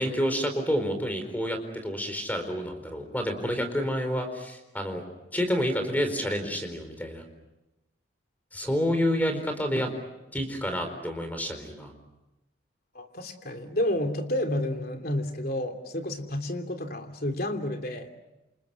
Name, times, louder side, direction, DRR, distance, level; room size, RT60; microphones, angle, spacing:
voice 1, 0.0-5.0 5.3-7.2 8.5-9.9 10.3-11.9, equal, 10° left, 7 dB, 4.5 m, -29 dB
voice 2, 12.9-18.1, left 1 dB, 50° left, 5 dB, 3.1 m, -30 dB
28.5 x 28.0 x 6.3 m, 0.96 s
head